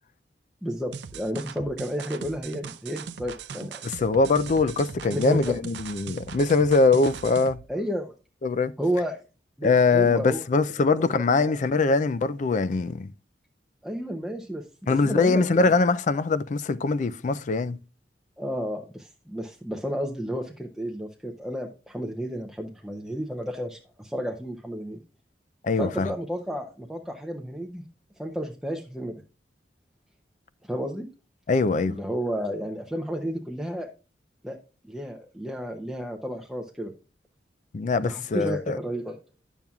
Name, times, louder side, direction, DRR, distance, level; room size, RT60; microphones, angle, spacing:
voice 1, 0.6-3.8 5.1-5.6 7.7-8.2 8.8-9.2 9.6-11.5 13.8-15.7 18.4-25.0 25.8-27.8 28.2-29.1 30.6-31.1 31.8-33.9 34.4-34.6 34.9-36.9 38.0-39.2, equal, ahead, 0.6 m, -32 dB
sound 1, 0.9-7.6, right 6 dB, 75° right, 0.5 m, -40 dB
voice 2, 3.8-7.6 8.4-8.7 9.6-13.1 14.9-17.8 25.6-26.1 31.5-32.0 37.7-38.8, left 4 dB, 45° left, 0.4 m, -22 dB
10.5 x 7.1 x 2.3 m
head